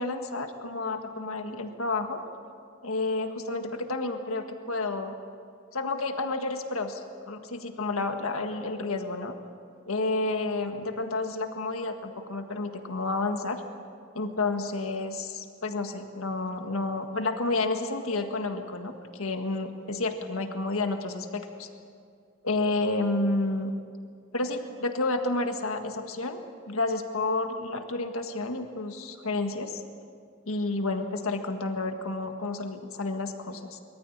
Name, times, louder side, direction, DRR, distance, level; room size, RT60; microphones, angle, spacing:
voice 1, 0.0-2.2 2.8-5.1 5.7-9.4 9.9-13.6 14.1-21.7 22.4-23.7 24.3-26.4 26.7-29.8 30.5-33.8, left 2 dB, 90° left, 6 dB, 1.7 m, -30 dB
23.5 x 14.0 x 8.6 m, 2.2 s
head